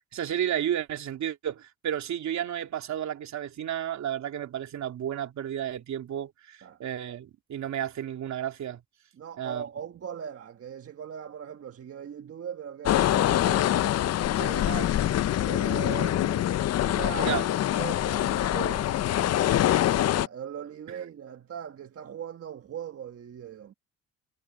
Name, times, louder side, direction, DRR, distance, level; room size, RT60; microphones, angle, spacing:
voice 1, 0.1-8.8 9.4-9.6 17.2-17.4, right 10 dB, 65° right, 3.0 m, -32 dB
voice 2, 9.1-13.9 14.4-16.5 16.8-23.7, right 8 dB, 50° right, 1.5 m, -40 dB
sound 1, 12.9-20.3, left 12 dB, 55° left, 0.6 m, -25 dB
cardioid pair, 90°, 30 cm